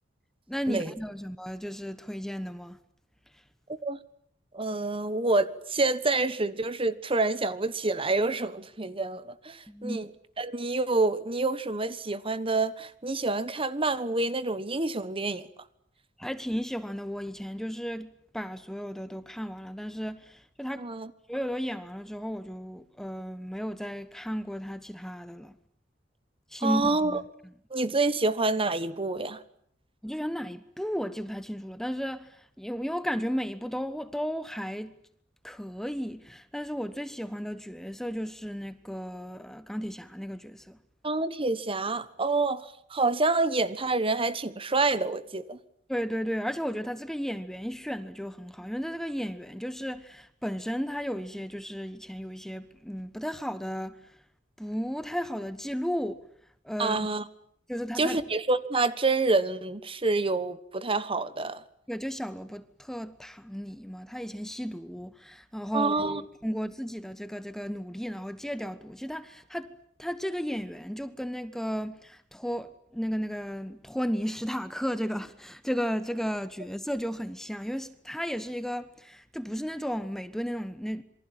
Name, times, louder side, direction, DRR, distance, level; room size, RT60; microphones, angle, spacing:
voice 1, 0.5-2.8 9.7-10.1 16.2-20.9 21.3-25.6 26.5-27.2 30.0-34.9 35.4-40.8 45.9-54.0 54.6-56.2 56.6-57.1 57.7-58.2 61.9-69.7 70.0-81.0, equal, ahead, 1.2 m, -34 dB
voice 2, 4.5-10.1 10.4-15.5 20.8-21.1 26.6-27.2 27.7-29.4 41.0-45.6 56.8-57.2 58.0-61.6 65.7-66.2, right 3 dB, 30° right, 1.4 m, -27 dB
27.5 x 24.0 x 8.9 m
head